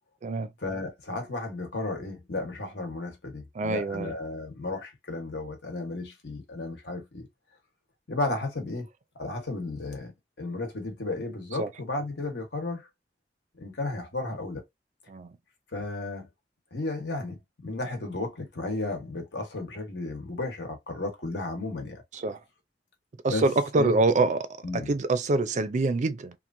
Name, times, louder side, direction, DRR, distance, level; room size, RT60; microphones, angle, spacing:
voice 1, 0.6-7.3 8.1-8.9 9.1-12.9 13.6-14.6 15.7-16.3 16.7-17.4 17.6-22.0 23.3-23.5 23.8-24.0 24.6-24.9, left 2 dB, 80° left, 1.2 m, -33 dB
voice 2, 3.6-4.1 11.6-11.7 15.1-15.3 22.1-22.4 23.2-24.4 24.7-26.3, right 3 dB, 45° right, 0.4 m, -25 dB
2.9 x 2.5 x 2.5 m
head